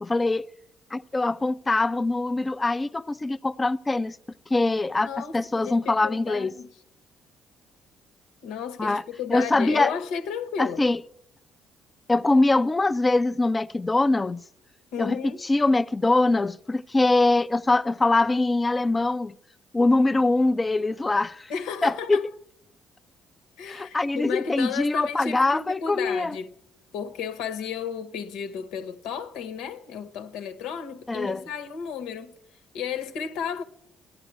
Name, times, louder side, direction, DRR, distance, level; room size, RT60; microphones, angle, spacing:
voice 1, 0.0-0.4 0.9-4.2 4.5-6.5 8.8-9.0 9.3-9.9 10.6-11.0 12.1-14.4 15.0-19.3 19.7-21.5 21.8-22.3 23.7-26.4 31.1-31.4, left 2 dB, 25° left, 0.6 m, -23 dB
voice 2, 4.9-6.8 8.4-10.8 14.9-15.4 21.5-22.3 23.6-26.6 26.9-32.4 32.7-33.6, left 7 dB, 85° left, 1.3 m, -33 dB
14.0 x 10.5 x 9.2 m
supercardioid pair, 75°, 0 cm